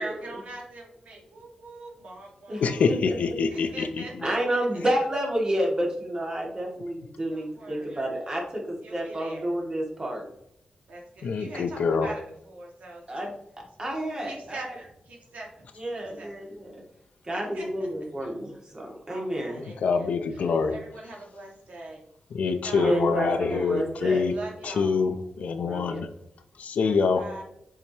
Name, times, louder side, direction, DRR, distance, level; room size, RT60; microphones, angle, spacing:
voice 1, 0.0-2.9 3.5-4.6 7.3-8.0 8.8-9.5 10.9-13.2 14.2-15.7 16.2-16.3 17.3-17.7 19.1-20.1 20.7-22.0 22.4-23.1 23.5-23.9 24.2-25.0 26.8-27.4, right 2 dB, 75° right, -1 dB, 2.1 m, -42 dB
voice 2, 2.6-4.2 11.2-12.1 19.7-20.8 22.3-24.3 24.6-26.1 26.6-27.2, left 5 dB, 80° left, 8 dB, 0.7 m, -25 dB
voice 3, 4.2-10.3 13.1-13.3 13.8-14.8 15.8-16.8 17.2-19.6 22.7-24.3 25.6-26.0, right 1 dB, 35° right, -1 dB, 2.3 m, -30 dB
7.3 x 5.1 x 3.0 m, 0.78 s
cardioid pair, 70°, 2 cm